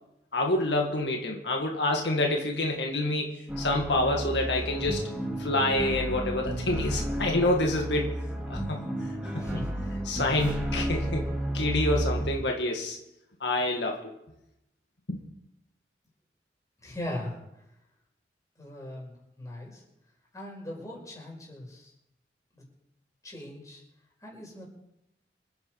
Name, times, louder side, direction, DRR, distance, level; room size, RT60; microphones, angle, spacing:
voice 1, 0.3-8.2 8.5-9.6 10.1-13.0 13.4-14.1 15.1-15.2, left 2 dB, 80° left, 2 dB, 2.0 m, -28 dB
sound 1, 3.5-12.3, right 1 dB, 5° right, 2.9 m, -32 dB
voice 2, 9.4-9.9 10.2-10.5 16.8-17.4 18.6-19.8 20.3-21.9 22.5-22.6 23.2-23.8 24.2-24.6, left 1 dB, 20° left, -3 dB, 5.5 m, -40 dB
26.5 x 9.4 x 4.8 m, 0.86 s
head